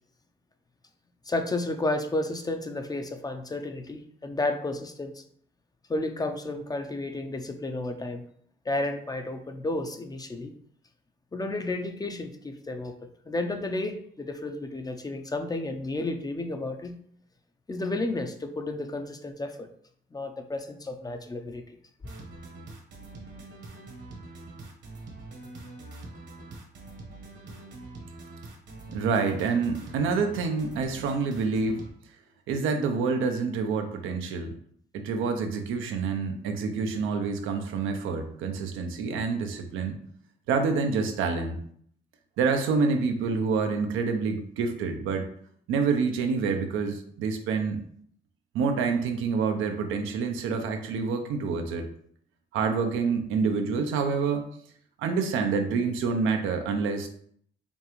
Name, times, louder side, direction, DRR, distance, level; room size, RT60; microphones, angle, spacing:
voice 1, 1.3-5.2 5.9-8.3 8.7-10.5 11.3-12.9 13.3-17.0 17.7-19.7 20.1-21.6, left 2 dB, 20° left, 6 dB, 0.5 m, -32 dB
sound 1, 22.0-31.9, right 2 dB, 60° right, 1.1 m, -44 dB
voice 2, 28.9-31.8 32.5-34.5 34.9-40.0 40.5-41.6 42.4-45.3 45.7-47.8 48.5-51.9 52.5-54.5 55.0-57.1, right 5 dB, 90° right, 5 dB, 0.6 m, -27 dB
5.3 x 2.4 x 3.1 m, 0.62 s
cardioid pair, 90°, 20 cm